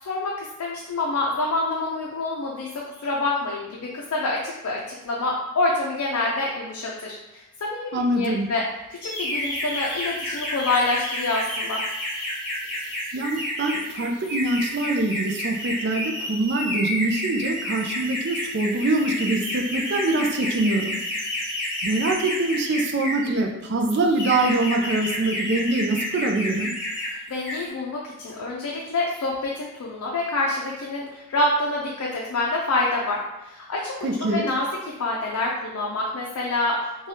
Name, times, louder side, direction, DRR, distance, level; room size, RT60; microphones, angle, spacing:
voice 1, 0.0-8.6 9.0-11.8 27.3-34.1 34.3-34.7 35.0-37.1, left 2 dB, 75° left, -3 dB, 0.4 m, -27 dB
voice 2, 7.9-8.5 13.1-21.0 21.8-26.7 34.0-34.5, right 2 dB, 50° right, 3 dB, 0.4 m, -24 dB
sound 1, 9.0-23.3 23.9-27.1 27.4-27.7, left 1 dB, 40° left, 1.4 m, -30 dB
3.2 x 2.2 x 2.7 m, 0.99 s
head